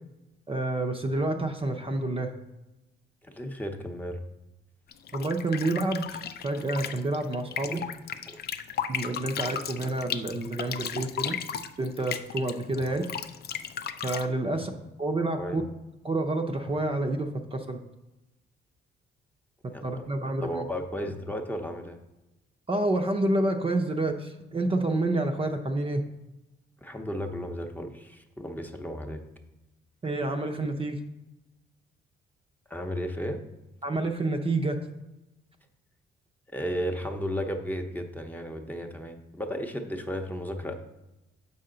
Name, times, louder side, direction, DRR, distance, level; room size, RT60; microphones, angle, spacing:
voice 1, 0.5-2.3 5.1-7.8 8.9-11.4 11.8-13.0 14.0-14.7 15.0-15.6 16.0-17.8 19.6-20.7 22.7-26.0 30.0-31.0 33.8-34.8, right 2 dB, 30° right, 4 dB, 0.6 m, -28 dB
voice 2, 3.3-4.2 7.7-7.8 8.3-8.4 12.9-13.0 15.4-15.6 19.7-19.8 20.2-22.0 26.8-29.2 32.7-33.4 36.5-40.7, equal, 10° left, 3 dB, 0.7 m, -34 dB
sound 1, 4.9-14.3, left 8 dB, 55° left, 0.5 m, -35 dB
6.9 x 5.5 x 3.9 m, 0.98 s
cardioid pair, 90°, 20 cm